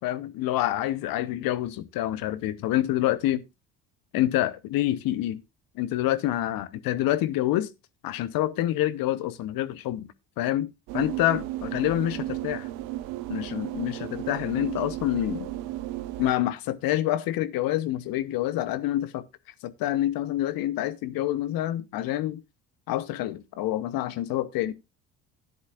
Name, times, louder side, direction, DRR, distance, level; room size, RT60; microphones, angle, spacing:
voice 1, 0.0-3.4 4.1-5.4 5.8-7.7 8.0-12.7 13.3-15.5 16.2-19.3 19.6-22.4 22.9-24.7, left 14 dB, 65° left, 1.0 m, -27 dB
sound 1, 10.9-16.3, right 15 dB, 75° right, 1.0 m, -34 dB
13.0 x 10.5 x 2.4 m
hypercardioid pair, 65°, 38 cm